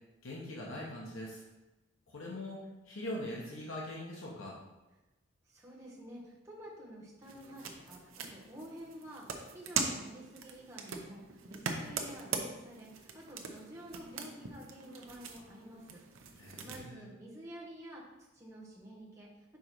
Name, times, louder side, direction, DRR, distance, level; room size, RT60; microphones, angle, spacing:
voice 1, 0.2-1.4 2.1-2.6 2.8-4.5 16.4-17.1, left 1 dB, 90° left, -3 dB, 1.0 m, -42 dB
voice 2, 5.5-9.3 9.5-16.0 16.3-18.0 18.3-19.3, right 1 dB, 15° right, -5 dB, 1.2 m, -50 dB
sound 1, 7.2-16.8, right 5 dB, 90° right, 0.7 m, -41 dB
5.3 x 3.9 x 4.5 m, 1.1 s
head